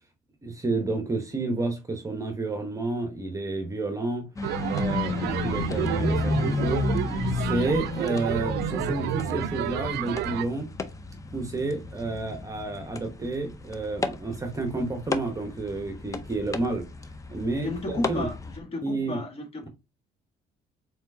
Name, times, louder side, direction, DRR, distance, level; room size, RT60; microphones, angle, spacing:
voice 1, 0.4-4.3 4.6-6.9 7.3-10.7 11.3-16.8 17.3-18.3 18.8-19.2 19.6-19.7, right 3 dB, 20° right, 0.9 m, -30 dB
sound 1, 4.4-18.6, left 3 dB, 20° left, 0.5 m, -33 dB
sound 2, 4.4-10.5, right 11 dB, 80° right, 0.4 m, -30 dB
voice 2, 17.6-18.3 18.6-19.7, left 2 dB, 35° left, 1.5 m, -32 dB
4.3 x 4.0 x 2.6 m
cardioid pair, 110°, 17 cm